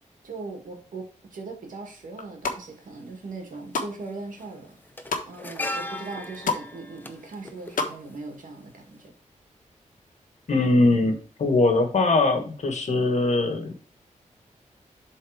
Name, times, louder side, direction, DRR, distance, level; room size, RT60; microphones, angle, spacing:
voice 1, 0.2-4.8 5.3-9.1, right 3 dB, 85° right, 1.9 m, -39 dB
sound 1, 2.1-2.6 3.2-3.9 4.3-5.3 5.8-5.9 6.1-6.7 7.0-7.9 8.2-8.3, left 4 dB, 85° left, 1.3 m, -30 dB
sound 2, 3.9-4.0 4.3-8.6 8.9-9.1, left 1 dB, 15° left, 0.8 m, -37 dB
voice 2, 10.5-13.7, left 2 dB, 60° left, 1.6 m, -21 dB
7.6 x 4.1 x 4.9 m
wide cardioid pair, 140°, 13 cm